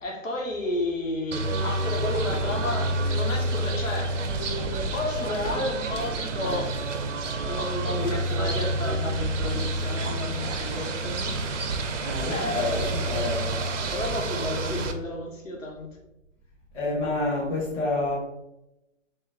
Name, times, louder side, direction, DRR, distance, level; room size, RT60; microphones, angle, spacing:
voice 1, 0.0-6.8 7.4-11.4 12.3-12.9 13.9-15.9, left 1 dB, 75° left, 0 dB, 1.2 m, -32 dB
sound 1, 1.3-14.9, right 2 dB, 70° right, 0.7 m, -29 dB
voice 2, 12.0-13.5 16.7-18.1, left 2 dB, 15° left, -6 dB, 1.1 m, -28 dB
4.2 x 2.2 x 3.7 m, 0.92 s
figure-of-eight pair, 135°, 39 cm